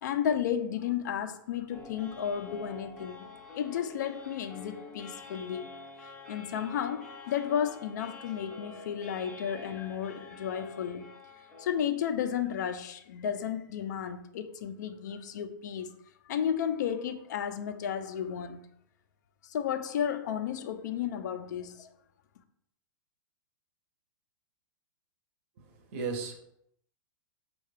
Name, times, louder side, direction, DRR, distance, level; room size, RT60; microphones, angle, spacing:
voice 1, 0.0-3.3 3.6-5.7 6.3-11.1 11.6-15.9 16.3-18.7 19.4-21.9, left 8 dB, 50° left, 0.4 m, -33 dB
sound 1, 1.7-11.8, left 3 dB, 10° left, 0.6 m, -47 dB
voice 2, 25.6-26.3, right 4 dB, 35° right, 0.6 m, -36 dB
5.5 x 2.3 x 3.2 m
supercardioid pair, 175°, 12 cm